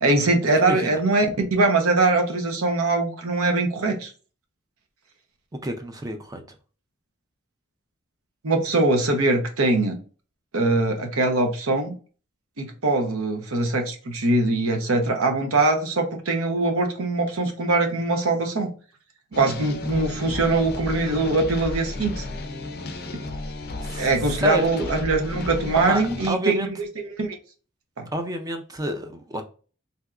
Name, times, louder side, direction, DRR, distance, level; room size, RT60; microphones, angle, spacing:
voice 1, 0.0-1.3 1.5-4.1 8.4-10.0 10.5-11.9 12.6-18.7 19.3-22.2 23.1-23.2 24.0-27.4 28.0-28.1, right 2 dB, 75° right, 0.8 m, -22 dB
voice 2, 0.6-1.0 5.6-6.4 23.8-24.1 24.4-24.9 25.8-26.7 28.1-29.4, equal, 15° right, 0.4 m, -29 dB
sound 1, 19.3-26.3, left 2 dB, 50° left, 0.5 m, -33 dB
3.4 x 2.7 x 2.4 m
head